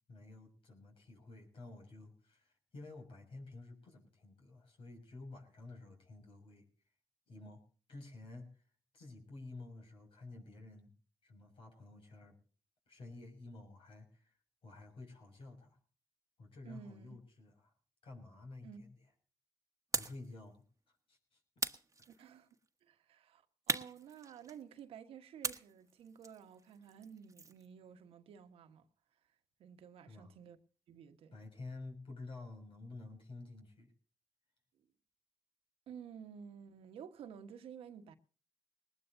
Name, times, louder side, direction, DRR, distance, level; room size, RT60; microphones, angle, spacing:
voice 1, 0.1-6.7 7.3-7.6 7.9-10.9 11.2-12.4 12.9-15.8 16.4-17.7 18.0-19.0 19.9-20.6 21.1-21.4 22.0-22.1 30.1-30.3 31.3-33.9, left 2 dB, 70° left, 6.2 m, -51 dB
voice 2, 16.6-17.2 18.6-18.8 22.1-22.5 22.8-28.9 29.6-30.6 30.9-31.4 35.9-38.1, right 8 dB, 80° right, 1.4 m, -52 dB
sound 1, 19.9-20.3 21.6-22.5 23.7-24.8 25.4-27.7, right 4 dB, 35° right, 1.3 m, -40 dB
20.0 x 20.0 x 2.7 m
supercardioid pair, 45°, 10 cm